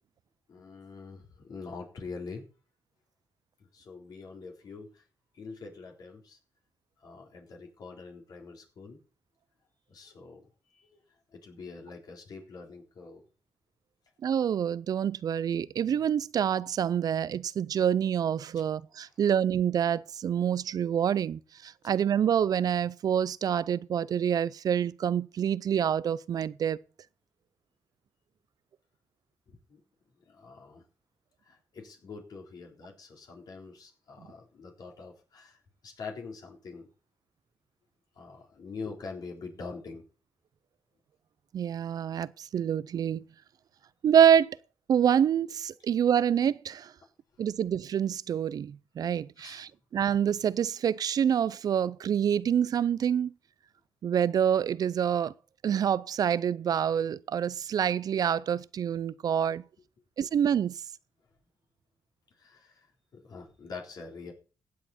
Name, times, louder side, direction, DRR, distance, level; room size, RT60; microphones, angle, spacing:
voice 1, 0.5-2.5 3.6-5.0 5.3-6.4 7.0-9.0 9.9-10.4 10.7-11.0 11.3-13.2 29.5-29.8 30.3-30.8 31.4-36.9 38.2-40.0 49.4-49.6 62.4-62.9 63.1-64.3, left 4 dB, 65° left, 3.6 m, -44 dB
voice 2, 14.2-26.8 41.5-43.2 44.0-44.6 44.9-46.9 47.4-53.3 54.0-55.3 55.6-59.6 60.2-60.7, right 8 dB, 65° right, 0.4 m, -27 dB
15.5 x 7.7 x 4.2 m
cardioid pair, 75°, 7 cm